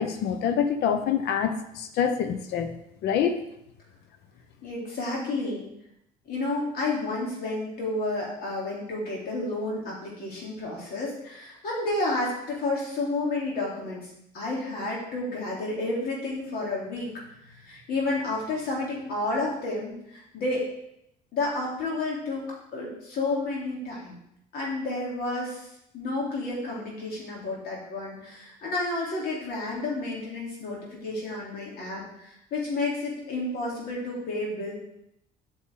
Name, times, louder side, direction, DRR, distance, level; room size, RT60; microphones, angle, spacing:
voice 1, 0.0-2.7 3.0-3.4, left 7 dB, 80° left, 9 dB, 0.9 m, -26 dB
voice 2, 4.6-5.7 6.3-17.1 17.4-20.6 21.3-22.5 22.7-24.2 24.5-25.6 25.9-34.7, left 2 dB, 65° left, -4 dB, 3.4 m, -31 dB
8.5 x 6.6 x 3.8 m, 0.79 s
cardioid pair, 110°, 17 cm